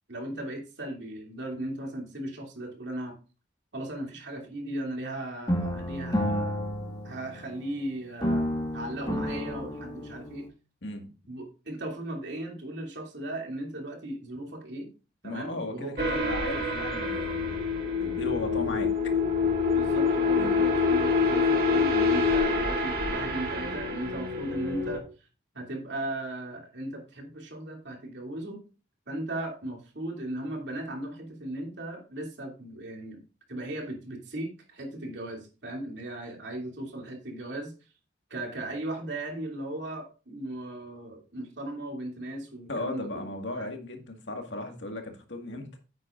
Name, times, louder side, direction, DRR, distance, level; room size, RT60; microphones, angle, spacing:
voice 1, 0.1-3.2 3.7-6.6 7.0-8.4 8.7-10.5 11.3-14.9 15.2-15.9 19.7-25.0 25.5-28.6 29.1-33.2 33.5-37.7 38.3-43.7, right 1 dB, 70° right, 1 dB, 2.7 m, -37 dB
sound 1, 5.5-7.8 8.2-10.5, equal, 25° left, 1.7 m, -31 dB
voice 2, 15.2-17.5 18.0-18.9 20.3-20.6 42.7-45.7, left 2 dB, 80° left, 4 dB, 1.8 m, -36 dB
sound 2, 16.0-25.0, left 4 dB, 55° right, 2.0 m, -26 dB
9.6 x 8.2 x 2.5 m, 0.33 s
head